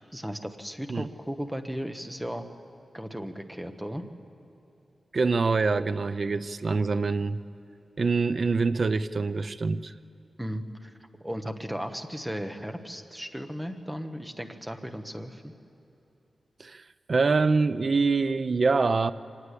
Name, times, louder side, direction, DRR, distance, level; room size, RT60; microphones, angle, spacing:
voice 1, 0.0-2.5 2.9-4.1 10.4-10.9 11.2-15.5, equal, 5° right, 7 dB, 1.2 m, -36 dB
voice 2, 5.1-7.4 8.0-9.9 16.6-19.1, right 4 dB, 45° right, 13 dB, 0.5 m, -25 dB
24.5 x 19.5 x 8.4 m, 2.9 s
wide cardioid pair, 150°, 0 cm